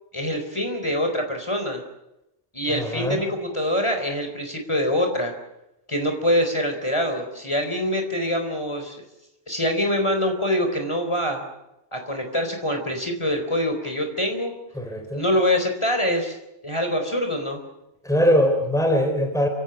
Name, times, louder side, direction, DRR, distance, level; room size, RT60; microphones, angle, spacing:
voice 1, 0.1-1.8 2.5-5.3 5.9-9.1 9.5-11.4 11.9-14.5 15.1-16.4 16.6-17.6, left 1 dB, 25° left, 5 dB, 4.1 m, -24 dB
voice 2, 2.7-3.2 14.8-15.2 18.0-19.5, equal, 5° left, 5 dB, 3.5 m, -21 dB
28.5 x 17.0 x 9.1 m, 0.91 s
omnidirectional pair, 1.2 m